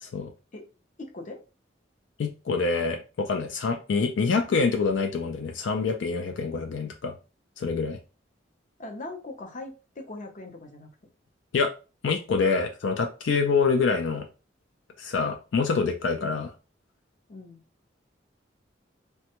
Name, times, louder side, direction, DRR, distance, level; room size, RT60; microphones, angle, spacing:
voice 1, 0.0-0.3 2.2-7.1 7.6-8.0 11.5-11.7 12.0-14.3 15.0-16.5, left 4 dB, 80° left, 6 dB, 0.4 m, -26 dB
voice 2, 1.0-1.4 8.8-10.9 16.2-16.4 17.3-17.6, left 2 dB, 45° left, 3 dB, 0.7 m, -40 dB
3.3 x 2.2 x 2.9 m, 0.32 s
head